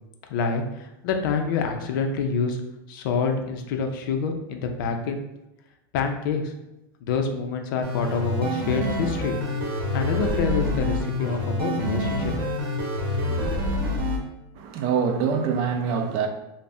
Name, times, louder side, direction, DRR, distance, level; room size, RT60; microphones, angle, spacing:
voice 1, 0.3-2.6 2.9-5.3 5.9-6.5 7.0-9.4 9.7-12.4, left 5 dB, 65° left, 0.4 m, -27 dB
sound 1, 7.8-14.2, left 1 dB, 85° right, 0.8 m, -27 dB
voice 2, 14.6-16.3, right 6 dB, 50° right, 0.4 m, -24 dB
2.6 x 2.0 x 3.3 m
supercardioid pair, 145°, 12 cm